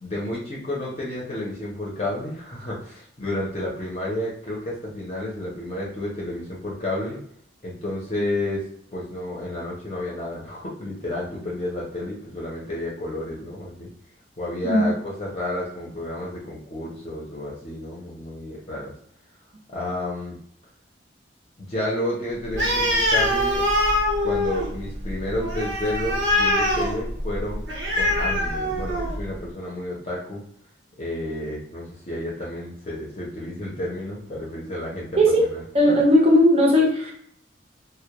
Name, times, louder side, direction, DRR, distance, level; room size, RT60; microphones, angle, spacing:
voice 1, 0.0-7.2 7.6-8.6 8.9-13.9 14.4-18.9 19.7-20.4 21.6-23.7 24.2-27.6 27.9-30.4 31.0-35.6, left 1 dB, 35° left, -4 dB, 0.6 m, -31 dB
Animal, 22.5-29.3, left 1 dB, 80° right, 0.8 m, -23 dB
voice 2, 35.7-37.1, equal, 35° right, -2 dB, 0.6 m, -17 dB
2.2 x 2.1 x 2.9 m, 0.68 s
head